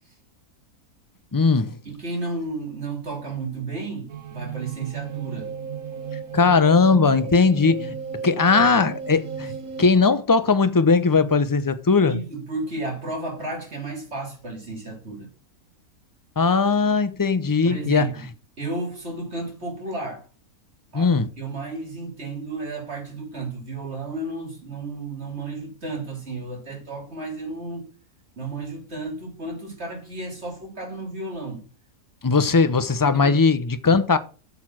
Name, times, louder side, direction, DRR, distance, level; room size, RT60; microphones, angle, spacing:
voice 1, 1.3-1.8 6.3-7.9 8.2-9.5 9.8-12.2 16.4-18.1 20.9-21.3 32.2-34.2, left 4 dB, 35° left, 0.3 m, -19 dB
voice 2, 1.8-5.5 12.0-15.3 17.6-18.3 18.6-20.2 20.9-27.9 28.4-31.6 33.0-33.4, right 2 dB, 45° right, 3.3 m, -33 dB
sound 1, 4.1-9.9, right 7 dB, 70° right, 1.7 m, -34 dB
8.6 x 6.7 x 6.1 m
omnidirectional pair, 1.5 m